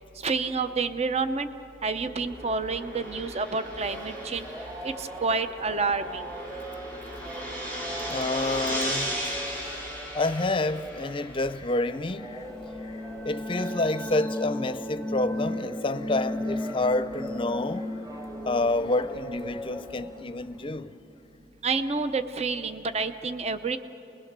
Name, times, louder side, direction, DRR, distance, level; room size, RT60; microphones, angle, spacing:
voice 1, 0.2-1.5 1.8-4.5 4.8-6.3 21.6-23.8, right 4 dB, 40° right, 0.7 m, -29 dB
sound 1, 2.0-11.6, equal, 55° right, 7.5 m, -36 dB
sound 2, 3.7-20.7, right 1 dB, 20° right, 1.7 m, -42 dB
voice 2, 8.1-9.2 10.1-12.5 12.8-17.9 18.5-20.9, left 2 dB, 30° left, 0.6 m, -28 dB
sound 3, 12.1-20.7, left 1 dB, 5° right, 1.3 m, -35 dB
28.5 x 21.0 x 6.7 m
head